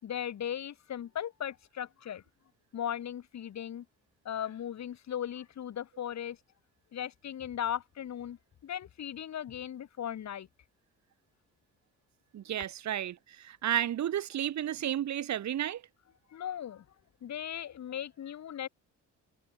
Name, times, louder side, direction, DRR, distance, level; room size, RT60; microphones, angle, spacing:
voice 1, 0.0-2.2 2.7-3.8 4.2-6.4 6.9-10.5 16.3-16.8 17.2-18.7, left 10 dB, 65° left, 5.1 m, -37 dB
voice 2, 12.3-15.8, right 11 dB, 65° right, 2.5 m, -32 dB
cardioid pair, 90°, 30 cm